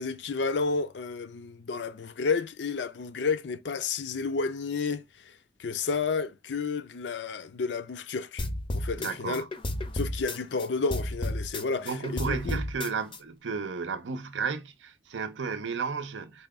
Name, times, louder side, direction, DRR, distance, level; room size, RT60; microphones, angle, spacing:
voice 1, 0.0-5.3 5.6-8.5 8.7-9.4 9.9-12.6, left 4 dB, 80° left, 0.5 m, -31 dB
sound 1, 8.4-10.7 10.9-13.2, left 1 dB, 30° left, 0.5 m, -32 dB
voice 2, 9.0-9.5 11.8-16.5, right 5 dB, 90° right, 0.6 m, -33 dB
4.3 x 2.3 x 3.5 m
head